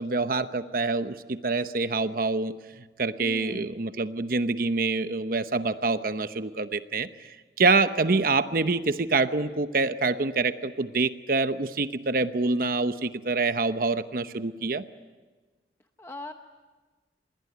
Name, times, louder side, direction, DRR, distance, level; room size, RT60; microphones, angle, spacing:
voice 1, 0.0-2.5 3.0-7.1 7.6-14.8, right 3 dB, 50° right, 11 dB, 0.9 m, -26 dB
voice 2, 3.2-3.7 16.0-16.3, left 1 dB, 15° left, 5 dB, 0.9 m, -39 dB
27.0 x 21.0 x 9.4 m, 1.3 s
head